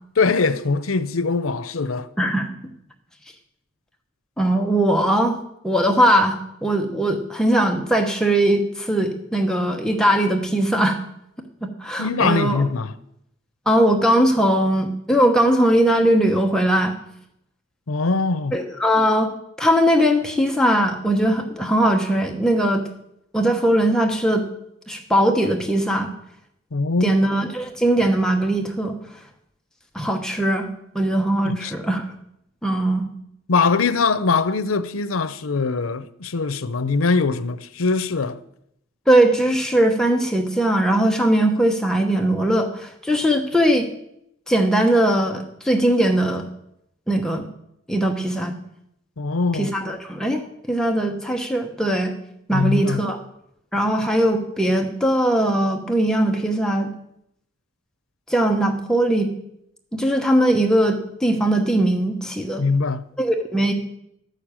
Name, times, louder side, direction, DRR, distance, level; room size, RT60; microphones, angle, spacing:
voice 1, 0.2-2.1 12.0-12.9 17.9-18.5 26.7-27.1 31.4-31.7 33.5-38.4 49.2-49.7 52.5-53.1 62.6-63.0, left 4 dB, 90° left, 0.7 m, -22 dB
voice 2, 2.2-2.5 4.4-5.4 5.6-11.0 11.6-12.6 13.7-16.9 18.5-19.3 19.6-22.8 23.3-24.4 24.9-26.1 27.0-29.0 29.9-30.7 30.9-32.0 32.6-33.1 39.1-43.9 44.5-46.5 47.1-47.5 47.9-48.6 49.5-50.4 50.7-52.1 52.5-53.2 53.7-56.9 58.3-59.3 59.9-62.6 63.2-63.7, right 1 dB, 5° left, 1.0 m, -20 dB
13.0 x 6.6 x 8.9 m
head